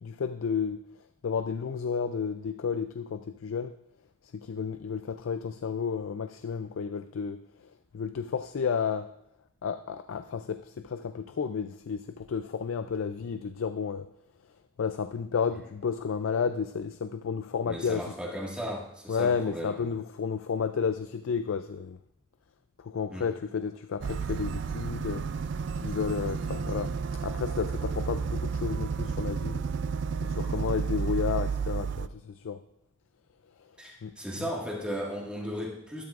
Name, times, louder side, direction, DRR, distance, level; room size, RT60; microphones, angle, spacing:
voice 1, 0.0-0.8 1.2-3.8 4.3-7.4 7.9-9.1 9.6-14.1 14.8-18.1 19.1-22.0 22.8-25.4 25.8-26.9 27.2-29.6 30.2-32.6 34.0-34.1 34.4-34.5, left 6 dB, 75° left, 0.4 m, -32 dB
voice 2, 17.7-19.8 23.1-23.3 33.8-36.0, equal, 5° right, 1.8 m, -36 dB
sound 1, 24.0-32.1, right 5 dB, 55° right, 0.3 m, -31 dB
12.5 x 12.0 x 2.5 m
head